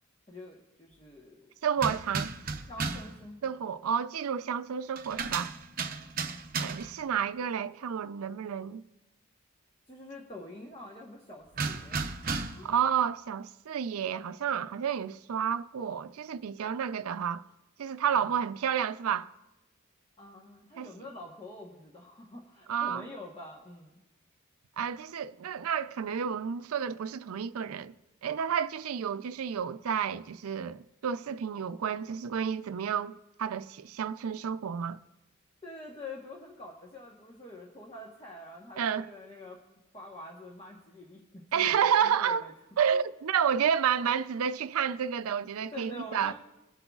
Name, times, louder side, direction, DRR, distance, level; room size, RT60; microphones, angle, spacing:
voice 1, 0.3-1.5 1.9-2.0 2.7-3.5 5.9-6.2 9.9-12.7 18.1-18.3 20.2-24.0 35.6-39.6 39.9-42.5 42.9-43.0 45.7-46.3, left 1 dB, 25° left, 1.1 m, -46 dB
voice 2, 1.6-2.3 3.4-5.5 6.6-8.8 12.6-17.4 17.8-19.3 20.8-20.9 22.7-23.0 24.8-27.9 28.2-35.0 38.8-39.1 41.5-42.4 42.8-46.3, right 8 dB, 85° right, 0.4 m, -30 dB
sound 1, 1.8-3.2 5.0-7.0 11.6-12.7, right 4 dB, 45° right, 0.7 m, -34 dB
22.5 x 8.0 x 2.4 m
head